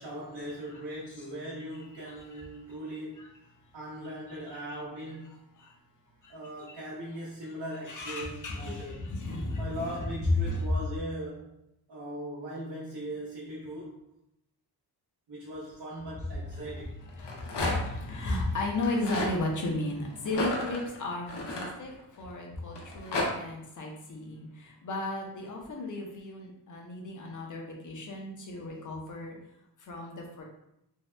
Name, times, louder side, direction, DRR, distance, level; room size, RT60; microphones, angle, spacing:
voice 1, 0.0-3.4 3.7-5.4 6.3-9.1 9.6-11.5 11.9-14.0 15.3-16.9, right 1 dB, 75° right, -9 dB, 0.9 m, -39 dB
voice 2, 1.9-2.4 2.7-2.8 3.2-3.3 4.5-4.8 5.6-5.7 6.2-6.3 6.7-6.8 7.4-7.5 7.9-10.0 10.4-10.7 16.5-16.8 17.1-21.9 22.2-29.4 29.8-30.4, left 2 dB, 50° left, 0 dB, 0.6 m, -35 dB
Rattle, 17.1-18.0 18.7-19.3 20.3-22.2 22.8-23.3, left 2 dB, 85° left, 0.7 m, -32 dB
2.7 x 2.1 x 3.2 m, 0.81 s
wide cardioid pair, 160°, 40 cm